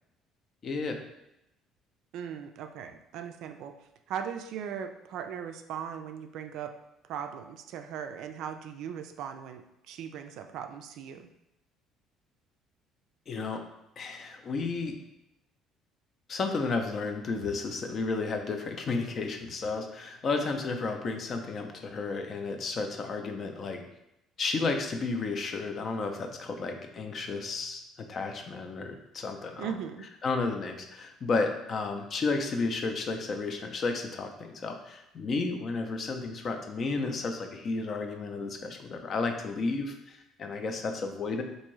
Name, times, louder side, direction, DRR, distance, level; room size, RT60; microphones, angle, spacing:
voice 1, 0.6-1.0 13.3-13.6 14.0-14.9 16.3-23.8 24.4-29.7 30.2-41.4, left 3 dB, 40° left, 4 dB, 0.4 m, -32 dB
voice 2, 2.1-3.7 4.1-6.7 7.1-11.3 29.6-30.1, right 8 dB, 70° right, 7 dB, 0.3 m, -38 dB
3.5 x 2.6 x 3.1 m, 0.87 s
cardioid pair, 120°, 0 cm